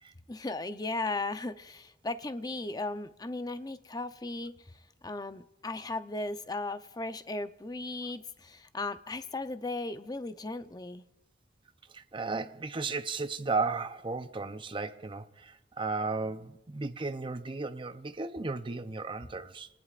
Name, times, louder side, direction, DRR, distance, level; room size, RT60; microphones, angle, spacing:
voice 1, 0.3-4.7 5.0-11.0, left 2 dB, 20° left, 0.6 m, -36 dB
voice 2, 11.9-19.7, right 3 dB, 25° right, 0.6 m, -35 dB
26.5 x 19.0 x 2.5 m
head